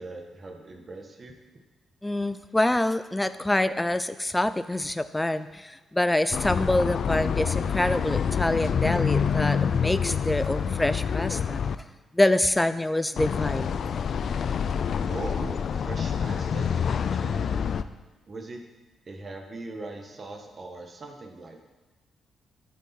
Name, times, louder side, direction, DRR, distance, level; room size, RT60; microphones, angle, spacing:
voice 1, 0.0-1.3 15.1-17.6 18.3-18.6 19.0-21.7, right 2 dB, 40° right, 3 dB, 1.5 m, -40 dB
voice 2, 2.0-11.6 12.1-13.8, left 1 dB, 10° left, 13 dB, 0.5 m, -26 dB
sound 1, 6.3-11.8 13.2-17.8, left 7 dB, 60° left, 0.4 m, -27 dB
13.5 x 7.0 x 4.4 m, 1.2 s
cardioid pair, 90°, 0 cm